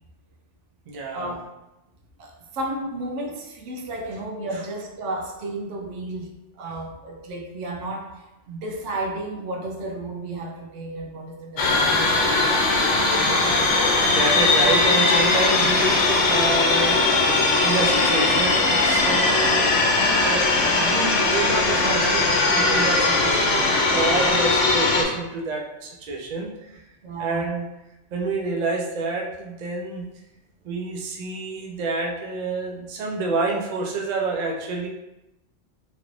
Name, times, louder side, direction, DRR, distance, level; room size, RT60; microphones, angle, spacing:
voice 1, 0.9-1.4 13.4-17.1 17.6-19.8 20.1-26.5 27.2-27.7 28.1-30.0 30.6-34.9, right 3 dB, 55° right, 0 dB, 0.5 m, -28 dB
voice 2, 2.2-12.3 13.2-13.4 27.0-27.5, right 2 dB, 85° right, 2 dB, 0.9 m, -33 dB
sound 1, 11.6-25.0, left 3 dB, 85° left, 0.9 m, -20 dB
3.1 x 2.5 x 3.1 m, 0.94 s
omnidirectional pair, 1.2 m